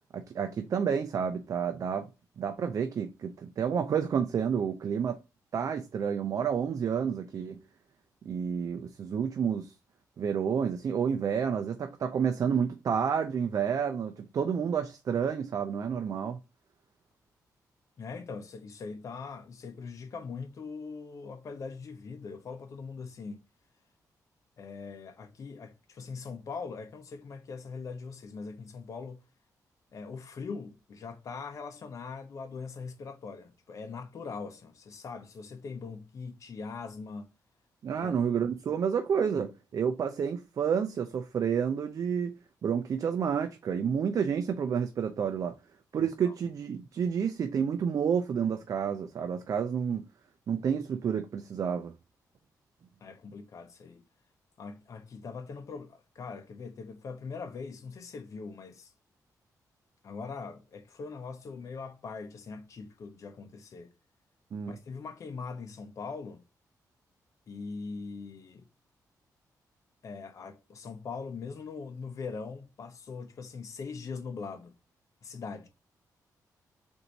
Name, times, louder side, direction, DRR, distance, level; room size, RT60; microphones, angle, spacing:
voice 1, 0.1-2.1 2.4-5.2 5.5-7.6 8.3-9.7 10.2-16.4 37.8-42.3 42.6-45.5 45.9-50.1 50.5-51.9 64.5-64.7, right 7 dB, 55° right, 0.5 m, -30 dB
voice 2, 18.0-23.4 24.6-29.2 29.9-37.3 38.0-38.1 46.0-46.3 53.0-54.0 54.6-58.9 60.0-63.9 64.7-66.4 67.5-68.6 70.0-74.7 75.2-75.7, left 4 dB, 50° left, 0.7 m, -41 dB
4.0 x 2.7 x 4.5 m
cardioid pair, 125°, 7 cm